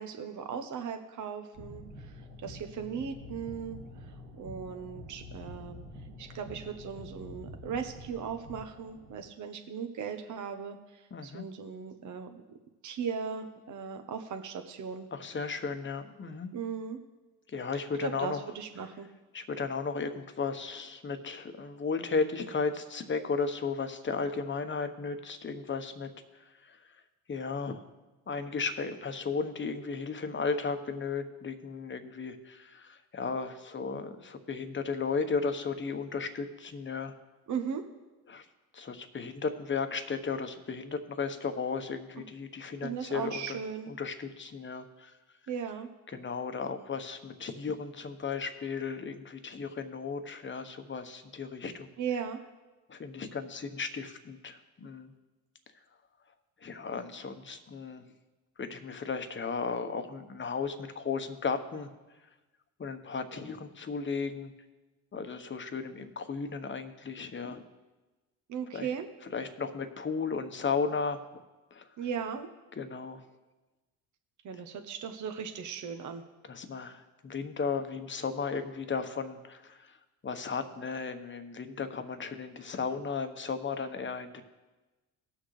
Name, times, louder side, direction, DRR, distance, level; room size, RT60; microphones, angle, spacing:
voice 1, 0.0-2.1 2.4-3.8 4.0-5.8 6.2-12.4 12.8-15.1 16.5-17.0 17.7-19.1 37.5-37.9 42.8-43.9 45.5-45.9 52.0-52.4 68.5-69.1 72.0-72.5 74.4-76.2, right 7 dB, 45° right, 5 dB, 1.1 m, -37 dB
sound 1, 1.5-9.2, left 1 dB, 90° right, 2.4 m, -47 dB
voice 2, 11.1-11.4 15.1-16.5 17.5-18.4 19.3-26.1 26.6-26.8 27.3-27.8 28.3-37.1 38.3-38.4 38.7-43.6 44.0-45.1 46.1-51.9 52.9-55.1 56.6-58.0 58.6-61.9 62.8-64.5 65.1-67.6 68.7-68.9 69.3-71.2 71.7-71.8 72.8-73.2 76.5-79.9 80.2-84.4, left 5 dB, 30° left, 8 dB, 1.2 m, -35 dB
18.5 x 6.4 x 3.3 m, 1.2 s
supercardioid pair, 70°, 41 cm